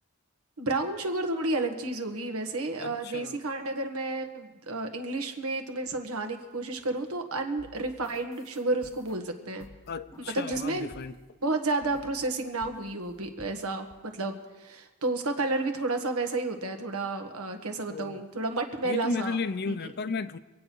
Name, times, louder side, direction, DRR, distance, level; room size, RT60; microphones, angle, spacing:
voice 1, 0.6-9.7 10.3-10.9 11.4-19.4 19.7-19.9, right 2 dB, 85° right, 5 dB, 1.6 m, -31 dB
voice 2, 2.8-3.4 9.9-11.2 17.9-18.2 18.8-20.4, left 4 dB, 45° left, 13 dB, 0.5 m, -33 dB
sound 1, 7.6-11.4 11.8-12.4 12.6-13.5 13.9-14.0, left 2 dB, 15° left, 1.0 m, -53 dB
25.5 x 8.7 x 4.6 m, 1.2 s
head